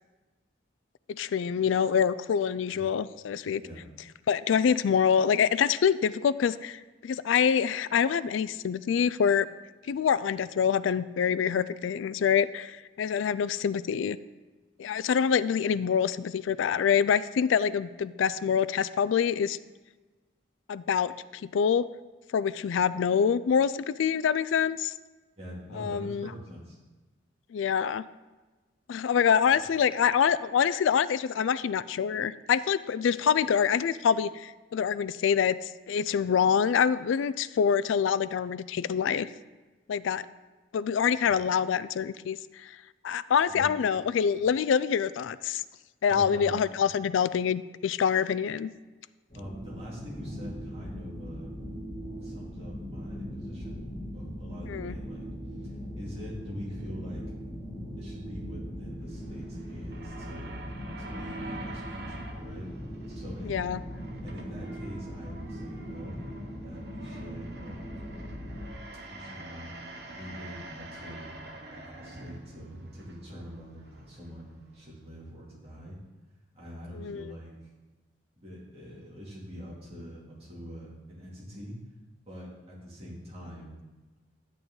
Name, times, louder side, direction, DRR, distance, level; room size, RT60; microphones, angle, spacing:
voice 1, 1.1-3.6 4.3-9.5 9.9-14.2 14.8-19.6 20.7-21.9 22.3-24.9 25.7-26.3 27.5-28.0 28.9-39.3 39.9-40.3 40.7-42.8 43.0-45.6 46.0-48.7 54.7-54.9 63.4-63.8 77.0-77.3, left 7 dB, 85° left, 17 dB, 0.3 m, -26 dB
voice 2, 25.4-26.8 41.2-41.3 43.5-43.7 46.1-46.6 49.3-51.5 52.2-53.8 54.1-55.2 55.6-57.2 58.0-60.5 61.0-62.7 63.1-63.7 64.2-66.2 66.6-67.9 69.1-69.7 70.1-71.4 71.7-76.0 76.5-77.7 78.4-81.7 82.2-83.8, equal, 30° right, -6 dB, 2.8 m, -44 dB
sound 1, 49.3-68.7, equal, 35° left, 3.3 m, -40 dB
sound 2, 58.9-75.3, right 2 dB, 55° right, 1.0 m, -47 dB
10.5 x 9.1 x 3.9 m, 1.2 s
head